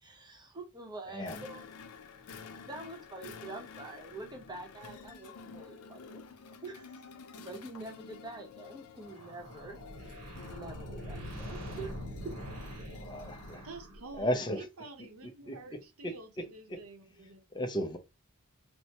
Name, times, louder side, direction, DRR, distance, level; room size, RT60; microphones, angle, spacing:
voice 1, 0.0-1.7 2.7-6.2 6.6-6.9 7.4-9.8 10.5-11.9 12.2-12.4, right 2 dB, 20° right, 0.7 m, -45 dB
sound 1, 1.2-13.7, left 5 dB, 80° left, 0.5 m, -50 dB
sound 2, 9.0-14.4, equal, 85° right, 1.1 m, -44 dB
voice 2, 13.0-13.7 14.2-14.6 15.5-15.6 16.0-16.1 16.7-16.8 17.5-18.0, equal, 20° left, 0.4 m, -34 dB
voice 3, 13.6-17.6, right 3 dB, 70° right, 0.8 m, -49 dB
4.3 x 2.0 x 2.8 m
head